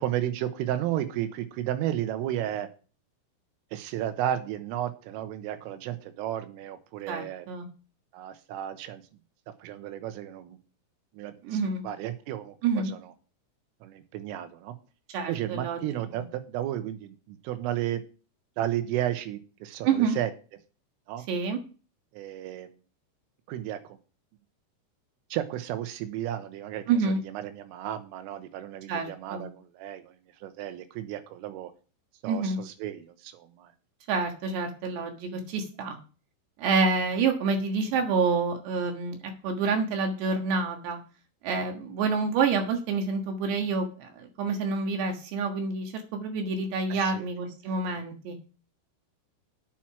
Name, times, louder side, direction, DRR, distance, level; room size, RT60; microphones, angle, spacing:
voice 1, 0.0-2.7 3.7-7.5 8.1-9.0 9.6-10.6 11.1-13.1 13.8-14.8 15.3-18.0 18.6-20.3 21.1-21.3 22.1-22.7 23.5-24.0 25.3-31.7 32.2-33.7 46.9-47.3, right 12 dB, 80° right, 10 dB, 3.6 m, -33 dB
voice 2, 7.1-7.7 11.4-11.8 12.6-12.9 15.1-15.8 16.1-16.2 19.8-20.2 21.3-21.6 26.9-27.2 28.9-29.5 32.3-32.6 34.1-36.0 36.6-39.2 39.4-41.0 41.4-48.4, right 4 dB, 65° right, 4 dB, 3.3 m, -28 dB
9.1 x 7.5 x 6.0 m, 0.36 s
omnidirectional pair, 5.9 m